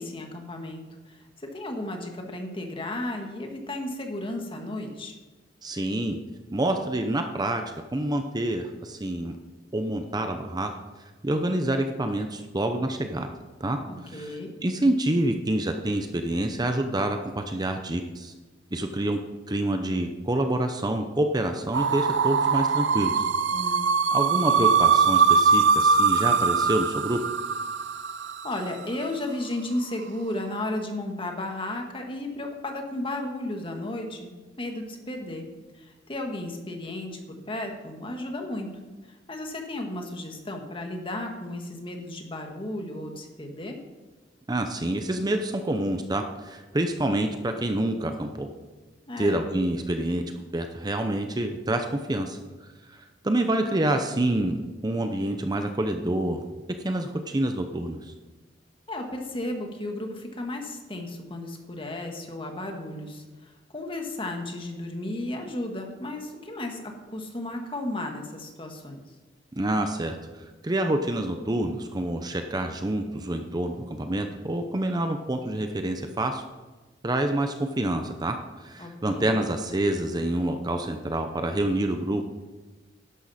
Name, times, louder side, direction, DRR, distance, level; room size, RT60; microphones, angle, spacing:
voice 1, 0.0-5.1 13.9-14.5 23.5-24.1 28.3-35.5 35.7-38.7 39.1-43.8 49.1-49.4 58.9-69.0 78.8-79.5, left 1 dB, 30° left, 3 dB, 1.7 m, -34 dB
voice 2, 5.6-6.2 6.5-7.6 7.9-9.3 9.7-10.7 11.2-13.3 13.6-18.3 18.7-19.2 19.5-23.3 24.1-27.2 44.5-48.5 49.2-50.2 50.5-52.4 52.9-56.4 56.8-58.1 69.5-76.4 77.0-82.3, right 1 dB, 20° right, 6 dB, 0.7 m, -27 dB
sound 1, 21.7-28.7, right 5 dB, 80° right, 0.6 m, -22 dB
12.5 x 11.0 x 4.3 m, 1.2 s
head